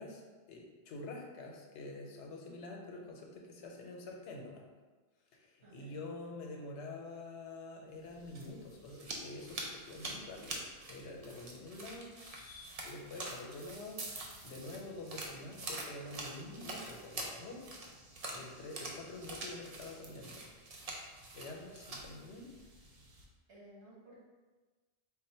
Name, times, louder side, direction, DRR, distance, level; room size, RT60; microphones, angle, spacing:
voice 1, 0.0-4.6 5.4-17.6 18.3-20.4 21.3-22.5, left 2 dB, 85° left, 0 dB, 1.0 m, -47 dB
voice 2, 5.6-6.0 23.5-24.2, right 1 dB, 75° right, -7 dB, 1.7 m, -56 dB
sound 1, 8.0-23.2, right 2 dB, 45° right, 0.5 m, -46 dB
3.8 x 2.1 x 4.2 m, 1.3 s
omnidirectional pair, 1.1 m